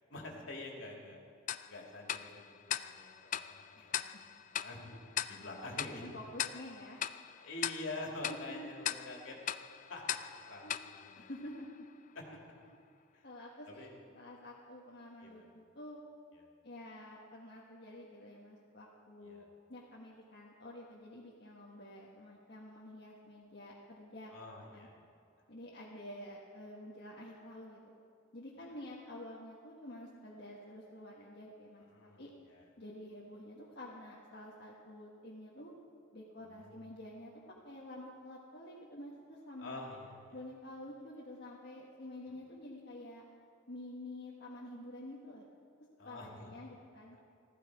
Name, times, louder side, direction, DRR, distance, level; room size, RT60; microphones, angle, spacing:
voice 1, 0.1-1.2 1.7-4.3 4.6-4.9 5.3-6.1 7.4-9.4 9.9-10.2 10.5-11.3 12.1-12.2 13.1-13.2 13.7-13.9 15.2-15.5 19.2-19.4 24.3-24.9 31.9-32.2 36.4-36.8 39.6-40.3 46.0-46.5, left 2 dB, 70° left, -1 dB, 2.7 m, -46 dB
Tick-tock, 1.5-11.9, left 10 dB, 40° left, 0.3 m, -41 dB
voice 2, 4.6-5.0 5.4-5.6 5.9-7.0 8.3-8.8 10.6-10.8 11.2-11.9 13.2-16.0 16.6-19.4 19.7-24.3 24.7-24.9 25.5-27.9 28.3-31.8 32.2-32.3 32.8-35.7 36.1-37.3 37.6-39.9 40.3-43.2 43.7-45.5 46.0-47.2, left 1 dB, 55° left, -4 dB, 1.5 m, -49 dB
16.0 x 14.5 x 4.9 m, 2.3 s
head